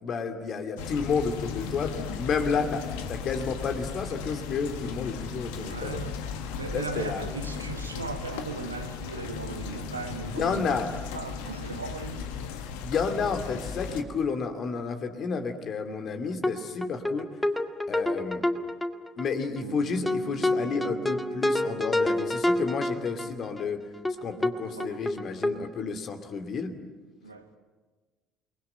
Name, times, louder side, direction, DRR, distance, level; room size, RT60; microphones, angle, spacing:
voice 1, 0.0-6.0 6.7-7.2 10.3-10.9 12.8-17.3 17.9-18.4 19.2-23.8 24.2-26.7, left 5 dB, 45° left, 2.6 m, -31 dB
sound 1, 0.8-14.0, left 6 dB, 65° left, 1.7 m, -36 dB
voice 2, 5.5-12.3 24.6-25.0 27.2-27.5, right 4 dB, 85° right, 1.5 m, -38 dB
sound 2, 16.4-16.5 16.8-19.3 19.6-19.7 20.1-23.6 24.0-24.2 24.4-24.5 24.8-25.5, left 1 dB, 10° left, 1.8 m, -27 dB
Bass guitar, 19.6-23.7, right 14 dB, 70° right, 0.9 m, -46 dB
29.0 x 20.5 x 8.9 m
figure-of-eight pair, 55°, 0 cm